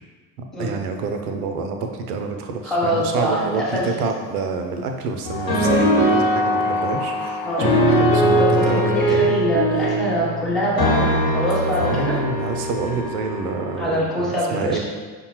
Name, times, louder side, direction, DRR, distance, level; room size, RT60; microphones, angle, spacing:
voice 1, 0.6-9.3 11.8-14.8, right 4 dB, 65° right, 4 dB, 0.6 m, -27 dB
voice 2, 2.6-3.9 7.4-7.7 8.4-12.1 13.8-14.8, equal, ahead, -7 dB, 1.1 m, -24 dB
Bird, 3.1-3.4 3.9-4.4 5.4-5.5 5.8-5.9 6.1-6.2 6.4-8.1 8.7-8.8, left 3 dB, 85° left, 0.8 m, -36 dB
sound 1, 5.2-13.9, equal, 45° left, 1.1 m, -21 dB
5.1 x 2.2 x 3.0 m, 1.5 s
figure-of-eight pair, 65°, 49 cm